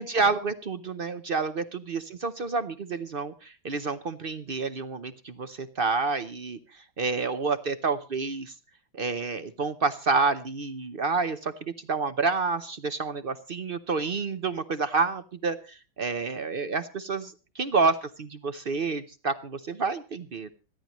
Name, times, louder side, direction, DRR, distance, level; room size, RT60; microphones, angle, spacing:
voice 1, 0.0-8.5 8.9-20.5, right 4 dB, 65° right, 12 dB, 0.5 m, -29 dB
25.5 x 10.5 x 3.0 m, 0.34 s
omnidirectional pair, 2.0 m